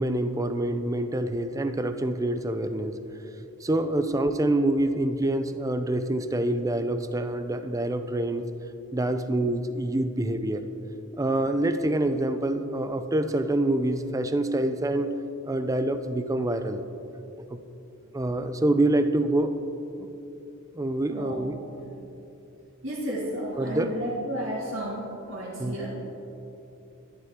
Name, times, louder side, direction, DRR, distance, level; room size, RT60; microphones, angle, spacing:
voice 1, 0.0-3.0 3.6-8.4 8.9-10.6 11.1-15.1 15.4-16.8 17.5-17.6 18.1-19.5 20.0-20.1 20.7-21.6 23.6-23.9 25.6-25.7, right 1 dB, 15° right, 9 dB, 0.4 m, -26 dB
voice 2, 21.1-21.4 21.8-22.0 22.8-25.9, right 1 dB, 60° right, -9 dB, 2.1 m, -33 dB
11.5 x 11.0 x 3.6 m, 2.9 s
head